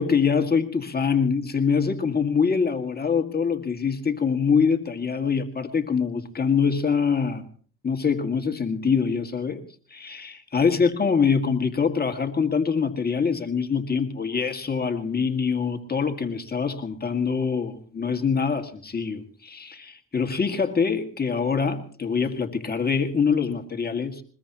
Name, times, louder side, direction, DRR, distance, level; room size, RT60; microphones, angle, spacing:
voice 1, 0.0-7.4 7.8-9.6 9.9-24.2, left 5 dB, 30° left, 6 dB, 2.0 m, -24 dB
22.5 x 21.0 x 3.0 m, 0.44 s
cardioid pair, 90°, 30 cm